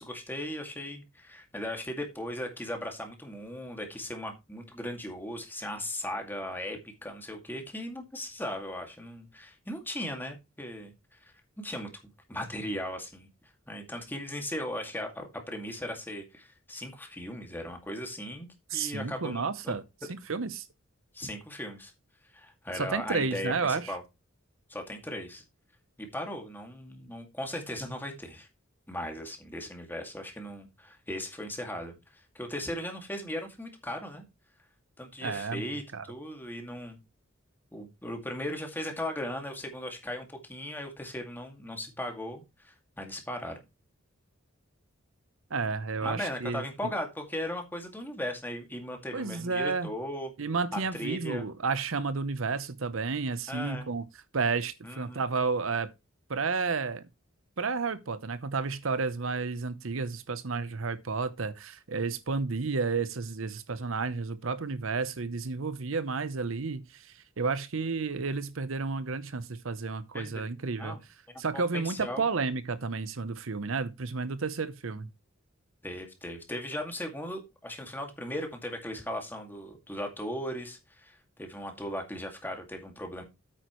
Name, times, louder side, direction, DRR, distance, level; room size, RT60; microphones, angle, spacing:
voice 1, 0.0-10.9 11.2-11.9 12.3-13.3 13.7-19.7 21.1-21.9 22.3-24.0 24.7-25.4 26.0-28.5 28.9-34.2 35.0-37.0 37.7-43.6 46.0-50.3 50.7-51.5 53.5-53.9 54.8-55.2 70.1-70.5 70.7-71.0 71.3-72.3 75.8-83.2, left 1 dB, 10° left, 2.2 m, -38 dB
voice 2, 18.7-19.8 20.3-20.7 22.7-23.9 35.2-35.6 35.9-36.0 45.5-46.6 49.1-49.9 50.4-54.0 54.3-55.9 56.3-57.0 57.6-71.0 71.4-75.1, right 4 dB, 75° right, 0.8 m, -31 dB
9.2 x 8.9 x 3.1 m
head